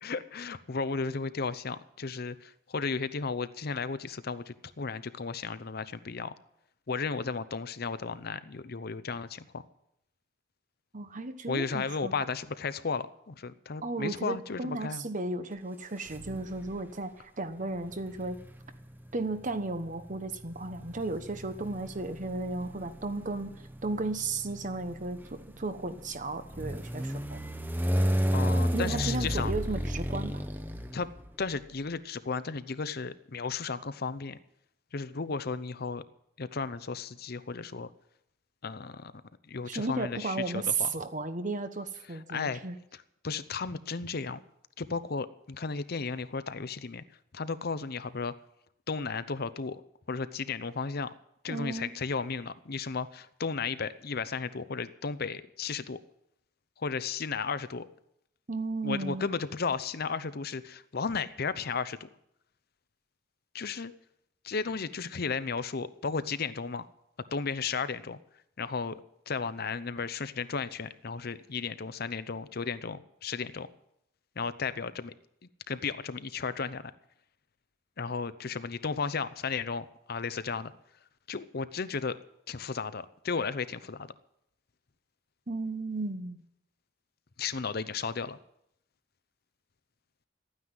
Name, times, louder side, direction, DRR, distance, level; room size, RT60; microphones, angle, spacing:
voice 1, 0.0-6.3 6.9-9.6 11.5-15.0 28.3-29.5 30.9-31.1 31.4-34.4 34.9-36.0 36.4-37.9 38.6-39.1 39.5-40.9 42.1-42.6 42.9-44.4 44.8-47.0 47.3-48.3 48.9-49.8 50.1-51.1 51.4-56.0 56.8-57.8 58.8-62.1 63.5-63.9 64.4-66.8 67.3-68.2 68.6-69.0 69.3-73.7 74.4-75.1 75.7-76.8 78.0-80.7 81.3-82.2 82.5-84.1 87.4-88.4, left 5 dB, 55° left, 14 dB, 0.7 m, -34 dB
voice 2, 10.9-12.1 13.8-18.4 19.1-23.5 23.8-27.4 28.7-30.4 39.7-42.8 51.5-51.9 58.5-59.3 85.5-86.4, right 3 dB, 45° right, 10 dB, 1.2 m, -34 dB
sound 1, 16.1-16.8 17.8-31.5, equal, 10° right, 1.0 m, -33 dB
14.0 x 9.6 x 9.6 m, 0.78 s
head